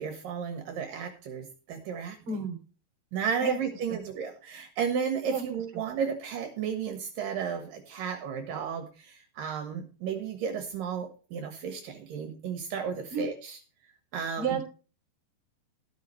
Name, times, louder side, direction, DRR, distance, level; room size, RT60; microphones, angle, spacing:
voice 1, 0.0-2.2 3.1-13.6 14.1-14.6, right 6 dB, 70° right, 5 dB, 3.1 m, -33 dB
voice 2, 2.3-2.6 3.4-3.6 5.3-5.4 13.1-13.3 14.4-14.7, right 5 dB, 40° right, 5 dB, 3.8 m, -30 dB
13.0 x 13.0 x 3.2 m, 0.35 s
omnidirectional pair, 4.1 m